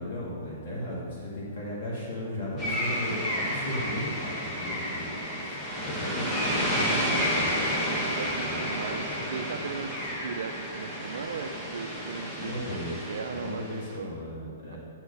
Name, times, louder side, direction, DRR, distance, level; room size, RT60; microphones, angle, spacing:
voice 1, 0.0-5.5 5.8-7.5 8.4-9.3 12.4-14.8, left 1 dB, 60° left, -6 dB, 2.3 m, -36 dB
sound 1, 2.6-13.9, equal, 15° left, 1.4 m, -31 dB
voice 2, 2.6-3.1 6.1-6.4 7.9-12.5 13.1-14.1 14.7-14.8, right 6 dB, 75° right, 5 dB, 0.5 m, -38 dB
10.0 x 4.7 x 5.4 m, 2.4 s
hypercardioid pair, 160°, 0 cm